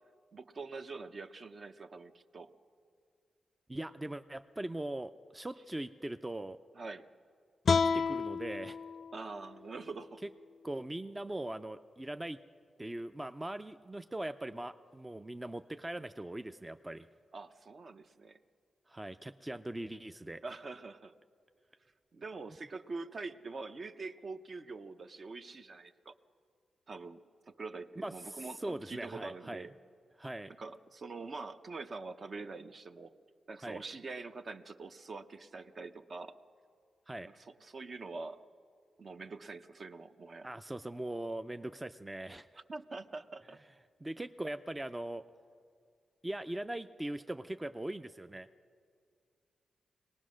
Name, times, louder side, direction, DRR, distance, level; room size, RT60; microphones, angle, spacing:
voice 1, 0.3-2.5 6.7-7.1 9.1-10.2 17.3-18.4 20.4-21.1 22.1-26.1 26.9-27.2 27.5-29.7 30.5-33.1 33.5-36.4 37.2-38.4 39.0-40.5 42.7-43.6, right 3 dB, 50° right, 9 dB, 0.8 m, -44 dB
voice 2, 3.7-6.6 7.7-8.8 10.6-12.4 12.8-17.1 18.9-20.4 28.0-29.7 30.2-30.5 33.6-33.8 37.1-37.3 40.4-42.5 44.0-45.3 46.2-48.5, right 1 dB, 15° right, 10 dB, 0.4 m, -40 dB
sound 1, 7.6-10.8, left 5 dB, 60° left, 0.4 m, -33 dB
24.0 x 19.0 x 6.3 m, 2.2 s
cardioid pair, 90°, 0 cm